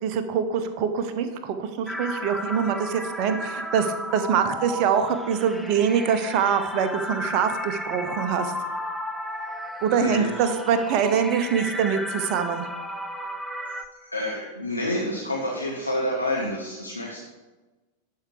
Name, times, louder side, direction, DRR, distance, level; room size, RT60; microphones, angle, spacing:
voice 1, 0.0-8.5 9.8-12.7, right 7 dB, 40° right, 9 dB, 0.8 m, -24 dB
sound 1, 1.9-13.9, equal, ahead, 0.6 m, -34 dB
voice 2, 10.0-10.5 13.9-17.2, left 1 dB, 90° left, -3 dB, 1.1 m, -28 dB
11.0 x 4.8 x 4.8 m, 1.2 s
figure-of-eight pair, 90°, 0 cm